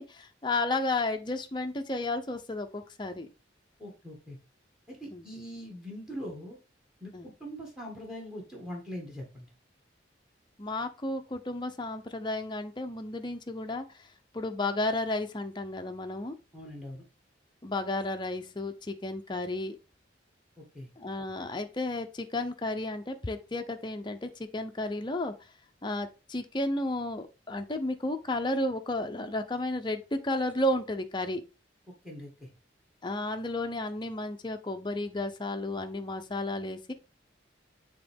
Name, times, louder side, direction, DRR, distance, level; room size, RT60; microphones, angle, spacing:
voice 1, 0.0-3.3 5.1-5.2 7.1-7.3 10.6-13.9 14.3-16.3 17.6-19.8 21.0-25.3 25.8-31.4 33.0-36.9, left 2 dB, 25° left, 6 dB, 0.7 m, -32 dB
voice 2, 3.8-4.4 4.9-6.6 7.0-9.5 16.5-17.0 20.7-20.9 32.0-32.5, equal, 5° right, -1 dB, 1.8 m, -42 dB
7.4 x 3.7 x 3.5 m, 0.30 s
head